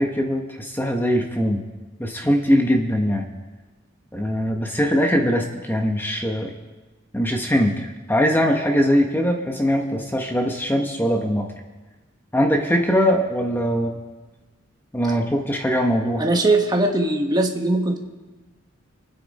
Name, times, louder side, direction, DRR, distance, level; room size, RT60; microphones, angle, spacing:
voice 1, 0.0-1.6 2.0-3.2 4.1-6.5 7.1-11.4 12.3-13.9 14.9-16.2, equal, 10° left, 2 dB, 1.1 m, -21 dB
voice 2, 16.2-18.0, right 2 dB, 20° right, 2 dB, 1.4 m, -20 dB
27.5 x 9.8 x 4.2 m, 1.2 s
head